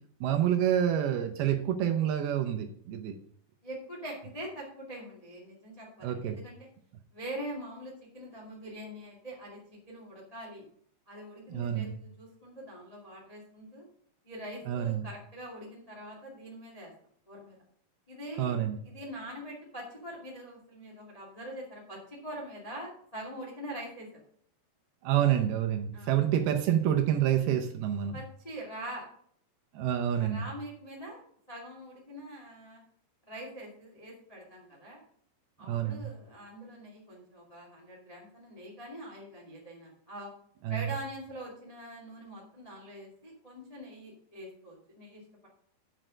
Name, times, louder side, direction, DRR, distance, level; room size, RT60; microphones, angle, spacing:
voice 1, 0.2-3.2 6.0-6.3 11.5-11.9 14.7-15.0 18.4-18.8 25.0-28.1 29.8-30.4 35.7-36.1 40.6-40.8, right 10 dB, 75° right, 5 dB, 2.5 m, -28 dB
voice 2, 3.6-6.6 7.1-9.6 9.9-10.6 11.1-13.9 14.2-16.9 17.3-17.5 18.1-18.6 18.8-24.1 25.9-26.2 28.1-29.0 30.1-31.2 31.5-32.8 33.3-35.0 35.6-40.3 40.7-45.5, right 1 dB, 25° left, -2 dB, 0.7 m, -43 dB
7.9 x 6.1 x 6.2 m, 0.64 s
omnidirectional pair, 4.9 m